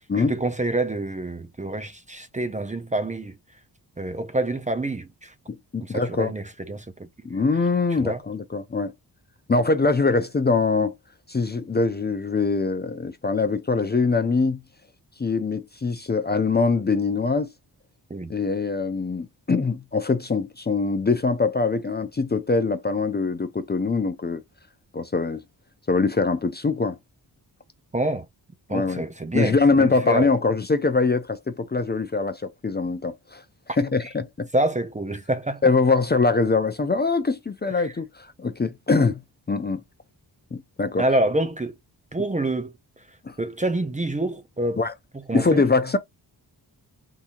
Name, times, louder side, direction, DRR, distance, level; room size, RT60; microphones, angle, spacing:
voice 1, 0.2-3.4 4.0-5.3 5.8-7.1 8.0-8.2 18.1-18.3 27.9-28.3 28.7-30.3 34.5-35.6 37.8-37.9 41.0-41.7 42.1-42.7 43.4-44.8 45.3-45.6, right 1 dB, 20° right, 0.6 m, -27 dB
voice 2, 5.7-6.3 7.2-8.9 9.5-10.9 11.3-14.6 15.2-17.5 18.3-24.4 24.9-25.4 25.9-27.0 28.7-29.0 29.3-33.4 33.8-34.5 35.6-39.2 39.5-39.8 40.5-41.1 43.2-43.3 44.8-44.9 45.3-46.0, left 4 dB, 25° left, 0.5 m, -23 dB
3.8 x 2.7 x 2.9 m
cardioid pair, 70°, 42 cm